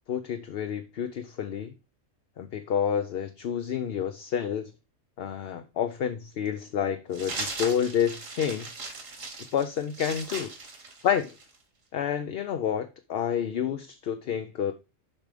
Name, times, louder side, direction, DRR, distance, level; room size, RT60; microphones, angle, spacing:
voice 1, 0.1-1.7 2.4-4.7 5.2-8.7 9.5-10.5 11.0-11.4 11.9-14.7, left 8 dB, 60° left, 0.8 m, -29 dB
sound 1, 7.1-11.6, right 3 dB, 75° right, 2.2 m, -38 dB
7.4 x 4.9 x 5.0 m
omnidirectional pair, 1.4 m